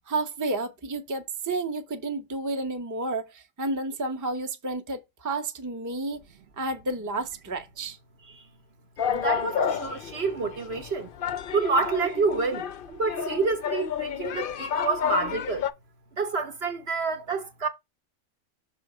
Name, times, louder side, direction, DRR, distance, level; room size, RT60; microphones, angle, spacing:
voice 1, 0.1-6.2 6.6-8.0, right 2 dB, 15° right, 0.7 m, -31 dB
sound 1, 9.0-15.7, left 8 dB, 60° left, 0.6 m, -30 dB
voice 2, 9.1-11.1 11.5-15.7 16.1-17.7, right 4 dB, 50° right, 1.0 m, -28 dB
6.1 x 3.6 x 5.0 m
omnidirectional pair, 1.5 m